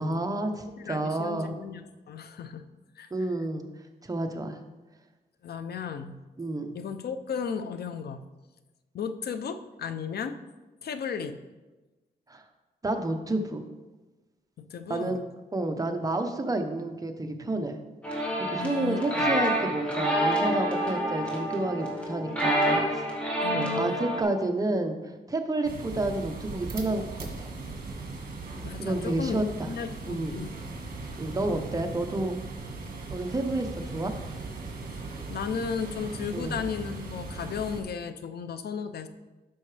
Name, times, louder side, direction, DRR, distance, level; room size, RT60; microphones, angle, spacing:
voice 1, 0.0-1.6 3.1-3.6 4.0-4.6 6.4-6.7 12.3-12.4 12.8-13.6 14.9-15.2 15.5-17.8 18.4-23.1 23.5-27.5 28.8-29.7 30.1-30.4 31.2-32.4 33.1-33.7 33.9-34.1 36.3-36.6, right 2 dB, 20° right, 4 dB, 0.9 m, -30 dB
voice 2, 0.8-2.6 3.0-3.3 5.4-6.2 6.7-8.2 8.9-10.4 10.8-11.4 14.6-15.2 18.6-19.4 23.4-24.0 28.6-30.6 35.3-39.1, left 6 dB, 75° left, 9 dB, 0.6 m, -35 dB
sound 1, 18.0-24.2, equal, 5° left, 2.0 m, -28 dB
sound 2, 25.6-37.8, right 3 dB, 60° right, 1.6 m, -38 dB
12.5 x 5.7 x 3.3 m, 1.2 s
wide cardioid pair, 100°, 17 cm